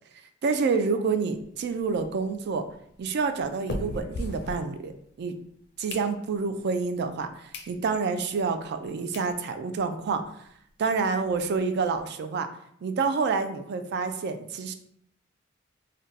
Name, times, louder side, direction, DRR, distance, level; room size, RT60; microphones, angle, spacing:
voice 1, 0.4-2.7 3.0-4.9 5.2-5.3 5.8-10.4 10.8-12.5 12.8-14.7, right 4 dB, 55° right, 9 dB, 0.3 m, -28 dB
sound 1, 1.3-5.2 5.6-6.6 7.1-7.2 7.5-7.7 8.2-8.3 8.8-8.9 9.1-9.3 9.8-9.9 10.0-10.2 10.4-10.5 10.9-12.0, left 1 dB, 55° left, 0.4 m, -39 dB
2.5 x 2.2 x 3.9 m, 0.68 s
head